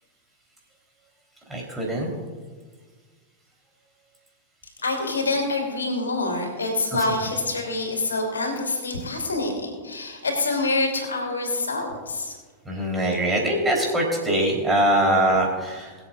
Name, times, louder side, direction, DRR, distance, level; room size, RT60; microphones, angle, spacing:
voice 1, 1.5-2.1 12.7-16.0, right 1 dB, 10° right, -1 dB, 3.8 m, -22 dB
voice 2, 4.8-12.4, left 2 dB, 70° left, 1 dB, 3.0 m, -26 dB
23.0 x 8.0 x 2.5 m, 1.5 s
figure-of-eight pair, 90°, 0 cm